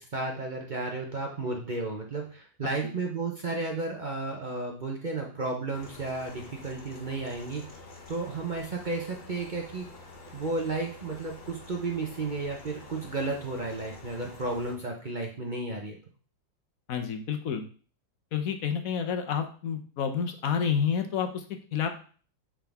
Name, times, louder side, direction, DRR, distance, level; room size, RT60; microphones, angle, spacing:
voice 1, 0.1-7.6 8.1-9.9 10.3-16.0, right 3 dB, 50° right, 0 dB, 0.5 m, -33 dB
sound 1, 5.7-14.7, left 2 dB, 35° left, 0.9 m, -48 dB
voice 2, 16.9-17.6 18.3-21.4 21.7-21.9, left 7 dB, 60° left, 6 dB, 1.0 m, -29 dB
7.4 x 3.7 x 3.4 m, 0.41 s
omnidirectional pair, 2.0 m